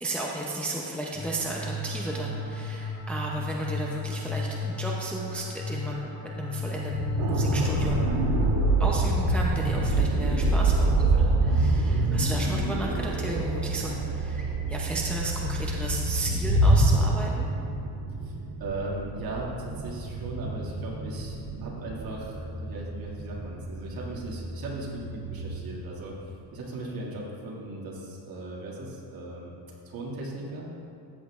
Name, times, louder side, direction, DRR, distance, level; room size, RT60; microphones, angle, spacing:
voice 1, 0.0-8.1 8.8-17.5, right 1 dB, 5° left, -3 dB, 0.6 m, -34 dB
sound 1, 1.1-8.6, left 2 dB, 35° left, 1.5 m, -33 dB
sound 2, 6.9-25.5, right 1 dB, 35° right, 1.8 m, -30 dB
sound 3, 7.2-25.0 25.4-25.6, right 3 dB, 85° right, 2.2 m, -29 dB
voice 2, 18.2-26.1 26.5-29.5 29.9-30.7, right 2 dB, 55° right, -4 dB, 2.1 m, -37 dB
13.5 x 8.2 x 2.4 m, 2.7 s
cardioid pair, 145°, 44 cm